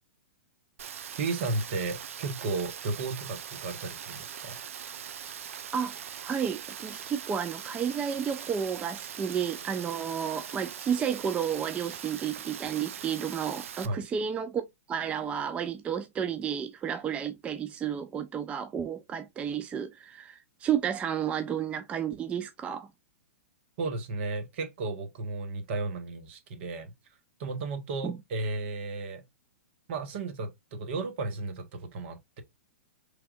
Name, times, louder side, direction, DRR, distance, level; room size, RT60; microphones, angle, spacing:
Rain, 0.8-13.9, right 8 dB, 70° right, 0.5 m, -41 dB
voice 1, 1.2-4.6 13.8-14.0 23.8-26.9 27.4-29.2 29.9-32.4, right 3 dB, 55° right, 1.1 m, -34 dB
voice 2, 6.2-22.9 28.0-28.2, right 8 dB, 15° right, 0.3 m, -32 dB
4.5 x 3.4 x 2.4 m
hypercardioid pair, 125°, 7 cm